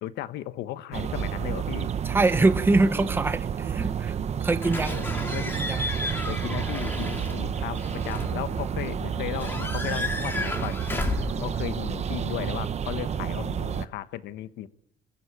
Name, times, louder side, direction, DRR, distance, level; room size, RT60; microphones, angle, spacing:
voice 1, 0.0-1.9 4.8-5.5 6.3-11.0 11.4-14.7, left 13 dB, 80° left, 1.2 m, -35 dB
sound 1, 0.9-13.9, right 8 dB, 40° right, 0.9 m, -30 dB
voice 2, 2.1-4.1 4.4-5.0 5.6-5.9, right 2 dB, 15° right, 0.9 m, -24 dB
Slam / Squeak / Alarm, 4.6-12.6, left 2 dB, 10° left, 2.7 m, -34 dB
25.5 x 15.0 x 8.7 m
cardioid pair, 110°, 17 cm